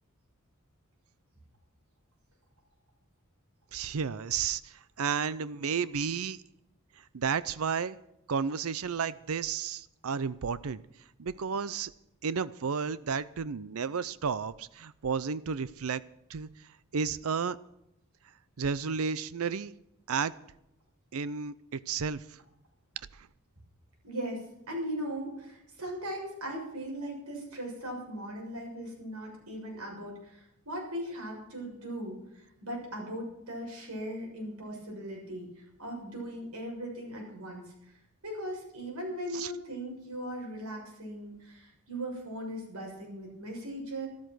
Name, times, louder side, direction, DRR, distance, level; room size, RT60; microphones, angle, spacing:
voice 1, 3.7-6.4 7.0-8.0 8.3-10.8 11.2-11.9 12.2-16.0 16.3-16.5 16.9-17.6 18.6-19.7 20.1-20.3 21.1-22.2 23.1-23.3 39.3-39.5, right 6 dB, 70° right, 17 dB, 0.6 m, -32 dB
voice 2, 24.0-37.7 38.2-44.1, right 1 dB, 85° right, 0 dB, 7.0 m, -39 dB
13.5 x 13.0 x 6.2 m, 0.80 s
head